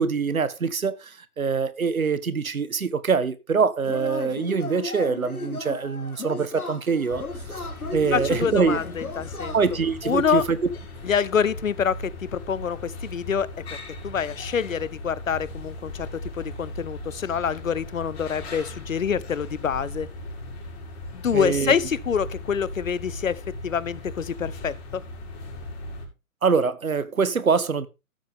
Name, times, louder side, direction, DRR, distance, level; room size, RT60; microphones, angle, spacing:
voice 1, 0.0-7.2 7.5-7.6 7.9-8.8 9.5-10.6 21.3-21.7 26.4-27.9, right 5 dB, 70° right, 1.3 m, -24 dB
Yell / Cheering, 3.8-10.0, left 2 dB, 80° left, 2.0 m, -35 dB
sound 1, 7.1-26.1, left 1 dB, 45° left, 5.3 m, -38 dB
voice 2, 8.1-9.5 10.0-10.4 11.0-13.5 14.0-20.1 21.1-25.0, left 7 dB, 65° left, 0.9 m, -26 dB
13.0 x 8.7 x 3.6 m
figure-of-eight pair, 130°, 43 cm